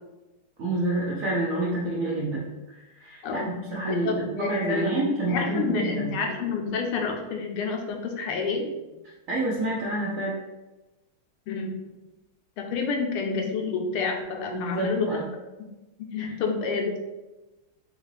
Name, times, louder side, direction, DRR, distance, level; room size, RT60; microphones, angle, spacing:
voice 1, 0.6-6.1 9.3-10.4 14.5-15.3 16.2-16.3, right 1 dB, 85° right, -6 dB, 0.7 m, -28 dB
voice 2, 4.0-5.0 5.3-8.7 11.5-11.7 12.6-15.1 16.1-17.0, left 4 dB, 85° left, 2 dB, 1.5 m, -29 dB
4.7 x 2.4 x 3.1 m, 1.1 s
omnidirectional pair, 2.4 m